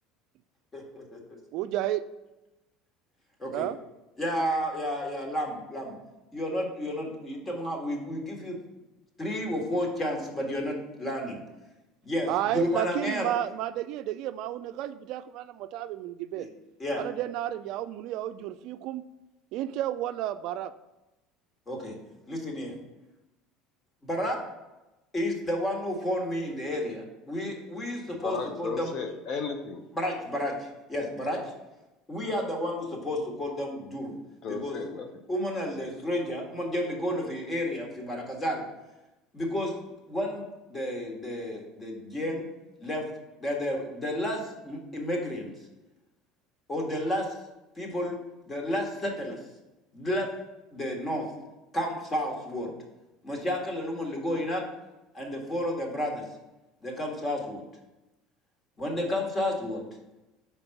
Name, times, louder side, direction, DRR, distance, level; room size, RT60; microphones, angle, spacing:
voice 1, 1.5-2.0 3.5-3.8 12.3-16.5 17.0-19.0 19.5-20.7, right 12 dB, 65° right, 12 dB, 0.3 m, -32 dB
voice 2, 4.2-6.0 6.3-8.6 9.2-11.4 12.0-13.3 16.4-16.5 16.8-17.0 21.7-21.9 22.3-22.8 24.0-24.4 25.1-29.0 29.9-31.4 32.1-34.1 34.5-34.8 35.3-38.6 39.3-39.8 40.1-42.5 42.8-43.0 43.4-45.5 46.7-47.3 47.8-48.2 48.5-49.4 49.9-50.3 50.7-51.2 51.7-52.7 53.2-54.6 55.1-56.2 56.8-57.6 58.8-59.8, left 1 dB, 20° left, 0 dB, 1.7 m, -31 dB
voice 3, 28.1-29.8 34.4-35.1, left 4 dB, 50° left, 5 dB, 0.8 m, -34 dB
5.3 x 4.2 x 5.8 m, 1.0 s
supercardioid pair, 115°, 0 cm